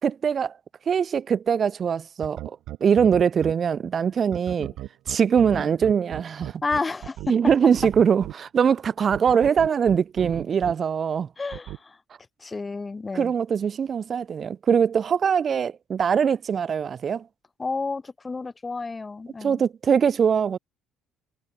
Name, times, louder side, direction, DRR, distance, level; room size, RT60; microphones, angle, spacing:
voice 1, 0.0-0.5 0.9-4.7 5.1-6.6 7.3-11.3 13.1-17.2 19.4-20.6, right 7 dB, 35° right, 1.8 m, -22 dB
sound 1, 2.2-3.5 4.3-8.3 9.1-10.7 11.5-11.8, right 15 dB, 70° right, 6.1 m, -35 dB
voice 2, 6.6-7.2 11.4-12.0 12.4-13.3 17.6-19.6, left 3 dB, 15° left, 4.0 m, -31 dB
cardioid pair, 150°, 0 cm